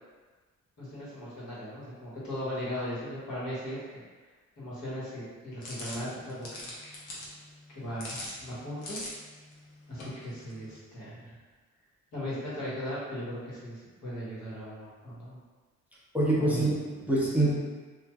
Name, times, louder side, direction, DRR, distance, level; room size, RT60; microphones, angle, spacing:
voice 1, 0.8-4.0 4.6-6.7 7.7-9.0 9.9-11.4 12.1-15.4 16.4-16.6, equal, 70° left, -8 dB, 1.4 m, -38 dB
sound 1, 5.6-10.8, left 1 dB, 90° left, 0.8 m, -44 dB
voice 2, 16.1-17.5, right 1 dB, 5° right, -7 dB, 0.6 m, -25 dB
3.1 x 2.5 x 2.3 m, 1.3 s
cardioid pair, 90°, 30 cm